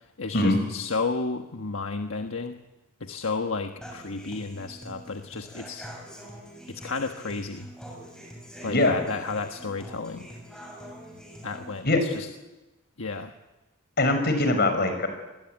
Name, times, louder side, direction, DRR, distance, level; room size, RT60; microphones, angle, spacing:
voice 1, 0.2-2.6 3.0-5.9 6.7-7.7 8.6-10.3 11.4-12.3 13.0-13.3, left 4 dB, 75° left, 5 dB, 1.4 m, -32 dB
Human voice / Acoustic guitar, 3.8-11.8, equal, 5° left, 7.0 m, -44 dB
voice 2, 8.7-9.0 11.8-12.0 14.0-15.1, left 2 dB, 50° left, 7 dB, 5.6 m, -22 dB
27.5 x 21.5 x 9.1 m, 1.1 s
head